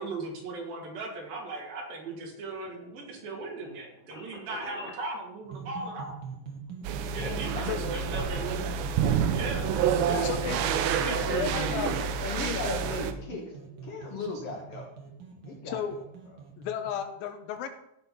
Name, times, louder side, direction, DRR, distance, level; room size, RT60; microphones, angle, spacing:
voice 1, 0.0-6.1 7.1-8.7 9.1-10.2 10.5-12.4, right 3 dB, 75° right, -1 dB, 3.8 m, -38 dB
sound 1, 2.1-5.0, left 2 dB, 30° left, 1.0 m, -47 dB
sound 2, 5.4-17.0, right 6 dB, 45° right, 1.6 m, -43 dB
sound 3, 6.8-13.1, right 7 dB, 90° right, 2.5 m, -28 dB
voice 2, 7.1-8.6 10.0-14.9 15.4-16.4, left 3 dB, 55° left, 0 dB, 1.8 m, -39 dB
voice 3, 10.2-10.6 11.0-12.0 12.3-12.6 15.7-16.0 16.6-17.7, left 9 dB, 80° left, 8 dB, 2.6 m, -33 dB
16.0 x 5.8 x 4.2 m, 0.79 s
omnidirectional pair, 4.3 m